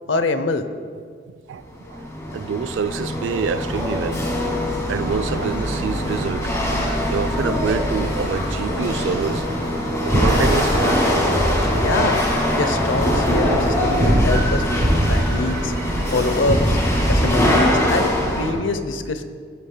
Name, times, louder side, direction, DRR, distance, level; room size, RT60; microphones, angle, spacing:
voice 1, 0.1-0.7 11.8-12.2 12.6-14.7 15.1-15.7 16.1-16.8 17.1-19.2, left 3 dB, 85° left, 0.7 m, -24 dB
voice 2, 1.3-2.1 2.3-4.2 4.9-6.6 7.1-9.5 9.8-11.2 11.8-11.9, right 6 dB, 75° right, 0.3 m, -27 dB
Chatter / Hiss / Rattle, 1.6-18.5, left 1 dB, 15° left, 1.9 m, -23 dB
sound 1, 5.1-12.5, left 1 dB, 45° left, 1.4 m, -37 dB
sound 2, 10.1-17.7, right 1 dB, 50° right, 2.1 m, -23 dB
15.0 x 11.0 x 2.2 m
head